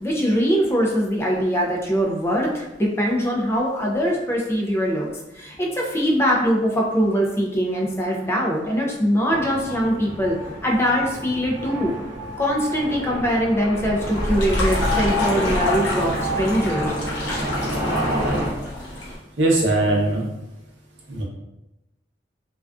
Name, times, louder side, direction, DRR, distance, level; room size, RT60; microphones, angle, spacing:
voice 1, 0.0-5.1 5.3-10.4 10.6-11.9 12.4-16.9, equal, 15° left, -2 dB, 0.4 m, -22 dB
sound 1, 9.3-18.5, equal, 15° right, 0.7 m, -27 dB
sound 2, 14.0-19.2, left 2 dB, 85° left, 0.8 m, -29 dB
voice 2, 19.4-20.2 21.1-21.2, right 2 dB, 75° right, -2 dB, 0.6 m, -20 dB
2.4 x 2.3 x 2.3 m, 0.98 s
head